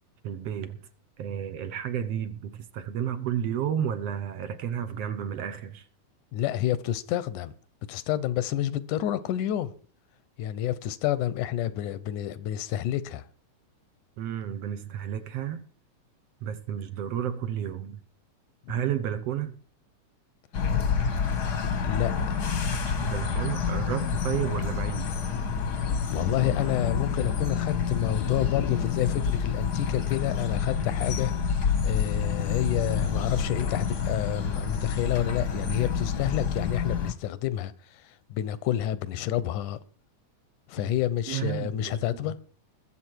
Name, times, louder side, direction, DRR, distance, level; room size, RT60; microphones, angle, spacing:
voice 1, 0.2-0.8 1.2-5.8 14.2-15.6 16.4-18.0 18.7-19.6 22.9-25.1 40.8-40.9 41.3-42.0, right 9 dB, 65° right, 1.8 m, -32 dB
voice 2, 6.3-7.5 7.9-9.7 10.4-13.2 18.7-18.8 21.8-22.4 26.1-31.3 31.8-37.7 38.3-39.8 40.7-42.4, left 12 dB, 85° left, 2.4 m, -29 dB
sound 1, 20.5-37.1, left 6 dB, 50° left, 1.3 m, -28 dB
21.5 x 7.9 x 4.6 m
omnidirectional pair, 3.5 m